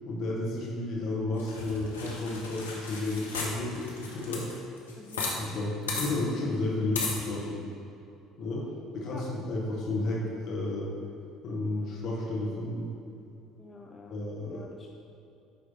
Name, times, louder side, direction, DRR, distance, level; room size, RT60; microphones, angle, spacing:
voice 1, 0.0-4.5 5.4-7.6 8.4-10.9 11.4-12.9 14.1-14.6, left 2 dB, 50° left, -3 dB, 1.4 m, -32 dB
sound 1, 1.4-5.4 5.6-5.7 5.9-6.1 7.0-7.2, left 3 dB, 80° left, 0.8 m, -35 dB
voice 2, 5.0-5.3 9.1-9.2 13.6-14.2 14.5-14.9, left 3 dB, 25° left, 1 dB, 0.4 m, -48 dB
9.3 x 3.2 x 4.1 m, 2.7 s
figure-of-eight pair, 55°, 0 cm